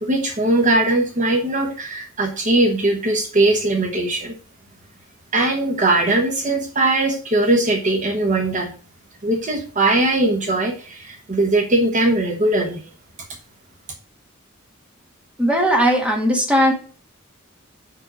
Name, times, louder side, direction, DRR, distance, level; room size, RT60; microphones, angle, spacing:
voice 1, 0.0-4.3 5.3-8.7 9.2-12.8, right 2 dB, 35° right, 2 dB, 1.0 m, -20 dB
voice 2, 15.4-16.7, equal, 5° right, 0 dB, 1.5 m, -17 dB
5.2 x 4.8 x 6.1 m, 0.41 s
head